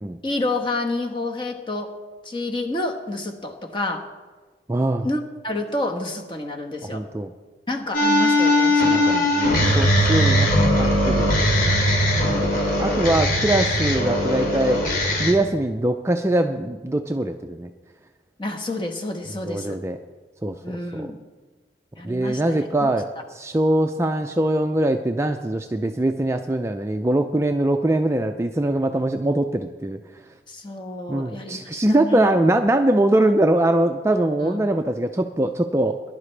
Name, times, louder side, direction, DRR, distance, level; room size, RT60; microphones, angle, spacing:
voice 1, 0.2-1.9 2.2-4.0 5.0-7.0 7.7-9.2 12.2-12.5 18.4-19.8 20.6-21.2 21.9-23.0 30.5-32.3 34.4-34.6, left 2 dB, 25° left, 3 dB, 1.3 m, -29 dB
voice 2, 4.7-5.1 6.8-7.3 8.8-11.8 12.8-14.8 15.2-17.7 19.5-20.0 20.4-21.1 22.0-23.1 23.3-30.2 31.1-36.0, right 1 dB, 15° right, 6 dB, 0.3 m, -22 dB
sound 1, 7.9-15.3, left 1 dB, 50° left, 2.7 m, -19 dB
19.5 x 11.0 x 3.3 m, 1.3 s
head